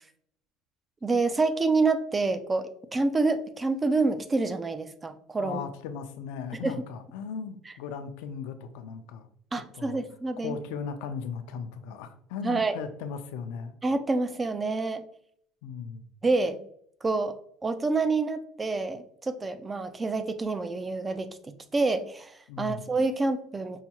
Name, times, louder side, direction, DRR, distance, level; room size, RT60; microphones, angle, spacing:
voice 1, 1.0-5.6 6.6-6.7 9.5-10.6 12.4-12.8 13.8-15.0 16.2-16.6 17.0-17.4 17.6-23.8, right 3 dB, 15° right, 11 dB, 0.3 m, -27 dB
voice 2, 5.4-9.3 9.7-10.0 10.4-13.7 15.6-16.0 22.5-22.9, left 6 dB, 85° left, 8 dB, 0.5 m, -37 dB
5.6 x 2.3 x 2.8 m, 0.66 s
cardioid pair, 140°, 0 cm